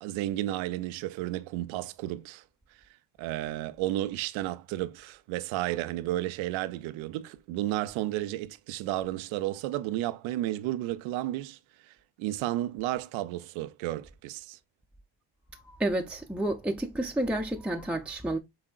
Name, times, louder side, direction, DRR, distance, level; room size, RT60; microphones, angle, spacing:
voice 1, 0.0-2.4 3.2-14.6, right 15 dB, 85° right, 0.6 m, -32 dB
voice 2, 15.5-18.4, right 1 dB, 5° right, 0.6 m, -30 dB
6.0 x 3.6 x 2.4 m
supercardioid pair, 70°, 46 cm